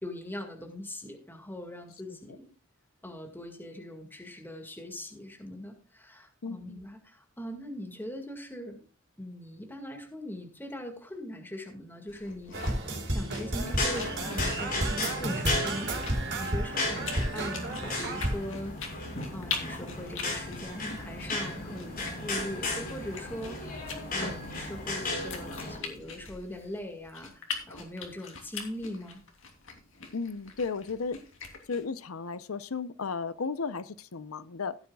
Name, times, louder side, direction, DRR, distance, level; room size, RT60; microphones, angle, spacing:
voice 1, 0.0-2.5 3.0-8.9 9.2-12.5 13.1-15.9 16.4-18.7 19.3-29.2, left 1 dB, 10° left, 3 dB, 1.9 m, -41 dB
voice 2, 6.4-6.8 30.1-31.2 31.7-34.8, left 4 dB, 85° left, 15 dB, 0.7 m, -34 dB
sound 1, 12.1-31.8, left 5 dB, 65° left, 3.0 m, -43 dB
sound 2, 12.5-18.4, right 1 dB, 55° right, 4.2 m, -32 dB
sound 3, 13.6-25.8, left 2 dB, 45° left, 5.4 m, -35 dB
16.0 x 9.5 x 2.4 m, 0.37 s
head